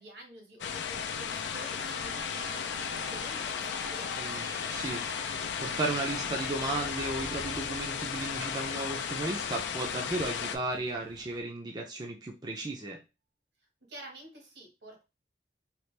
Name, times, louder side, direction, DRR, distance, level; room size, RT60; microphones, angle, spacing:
voice 1, 0.0-4.3 13.9-15.0, right 1 dB, 85° right, 0 dB, 1.5 m, -49 dB
sound 1, 0.6-10.6, left 7 dB, 90° left, 0.4 m, -35 dB
sound 2, 0.8-10.3 10.7-10.8, right 2 dB, 65° right, 1.0 m, -48 dB
voice 2, 4.2-5.3 5.6-13.0, right 2 dB, 25° right, 1 dB, 0.4 m, -35 dB
sound 3, 4.7-11.4, left 1 dB, 30° left, 0.5 m, -52 dB
2.9 x 2.4 x 3.2 m, 0.28 s
head